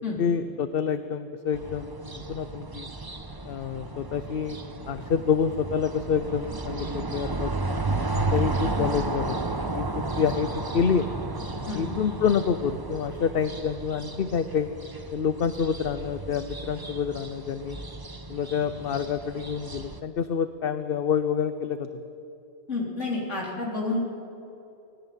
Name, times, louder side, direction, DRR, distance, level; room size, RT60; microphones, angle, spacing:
voice 1, 0.2-2.9 3.4-4.6 4.9-7.5 8.1-9.4 9.7-11.1 11.7-14.7 15.1-17.8 18.3-22.0, left 7 dB, 55° left, 11 dB, 0.9 m, -27 dB
sound 1, 1.5-20.0, right 2 dB, 20° right, 0.9 m, -33 dB
voice 2, 22.7-24.0, left 3 dB, 85° left, -3 dB, 3.9 m, -29 dB
20.0 x 17.5 x 9.1 m, 2.9 s
omnidirectional pair, 1.2 m